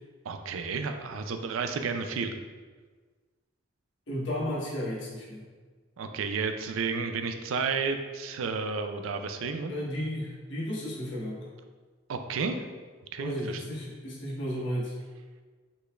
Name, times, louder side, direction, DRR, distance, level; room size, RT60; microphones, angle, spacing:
voice 1, 0.3-2.3 6.0-9.7 12.1-12.6 13.1-13.6, right 5 dB, 90° right, 7 dB, 0.4 m, -31 dB
voice 2, 4.1-5.5 9.7-11.5 13.2-15.0, equal, 65° left, -5 dB, 1.4 m, -33 dB
5.3 x 4.1 x 2.4 m, 1.4 s
head